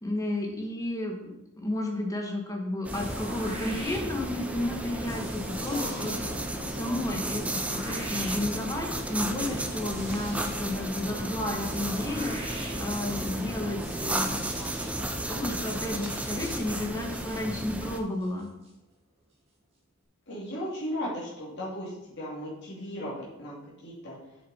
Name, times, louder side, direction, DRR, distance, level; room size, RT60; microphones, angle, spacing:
voice 1, 0.0-6.4 6.7-14.4 14.9-15.0 15.3-18.5, left 1 dB, 15° left, 1 dB, 1.2 m, -32 dB
sound 1, 2.8-18.0, right 1 dB, 5° right, 0.4 m, -34 dB
sound 2, 2.9-18.7, right 1 dB, 25° right, 2.1 m, -40 dB
voice 2, 5.5-6.7 20.3-23.6 23.8-24.2, equal, 50° left, -7 dB, 2.6 m, -37 dB
7.7 x 6.8 x 4.2 m, 0.91 s
head